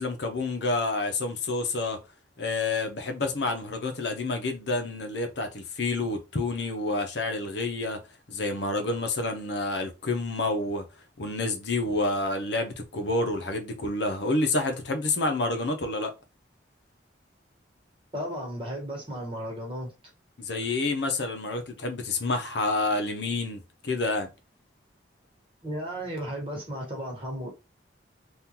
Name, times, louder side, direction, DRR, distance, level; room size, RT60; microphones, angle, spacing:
voice 1, 0.0-2.0 2.4-8.0 8.3-10.8 11.2-16.1 20.4-24.3, left 2 dB, 70° left, 0.7 m, -28 dB
voice 2, 18.1-19.9 25.6-27.5, equal, 30° right, 1.2 m, -34 dB
3.7 x 2.5 x 2.8 m
head